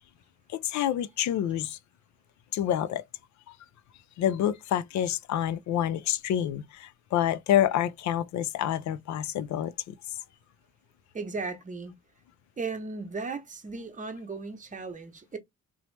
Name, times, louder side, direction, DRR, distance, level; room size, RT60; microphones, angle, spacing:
voice 1, 0.5-1.8 2.5-3.0 3.5-3.6 4.2-10.2, left 11 dB, 70° left, 0.4 m, -28 dB
voice 2, 11.1-11.9 12.6-15.4, right 4 dB, 25° right, 0.8 m, -36 dB
2.9 x 2.0 x 3.1 m
cardioid pair, 90°, 30 cm